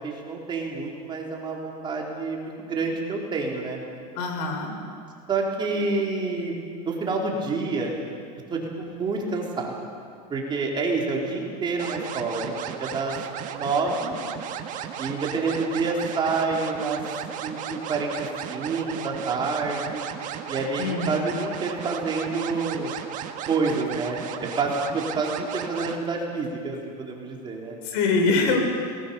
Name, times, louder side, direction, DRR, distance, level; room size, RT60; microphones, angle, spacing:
voice 1, 0.0-3.8 5.3-6.6 6.9-8.0 8.5-9.9 10.3-12.5 12.8-13.2 13.5-14.2 15.0-17.0 17.4-20.0 20.5-22.9 23.5-27.8, right 3 dB, 20° right, -1 dB, 4.1 m, -28 dB
voice 2, 4.2-4.7 20.8-21.3 27.8-28.6, left 3 dB, 65° left, 4 dB, 5.3 m, -24 dB
sound 1, 11.8-26.0, right 9 dB, 40° right, 1.7 m, -35 dB
27.5 x 20.5 x 7.2 m, 2.4 s
supercardioid pair, 140°, 21 cm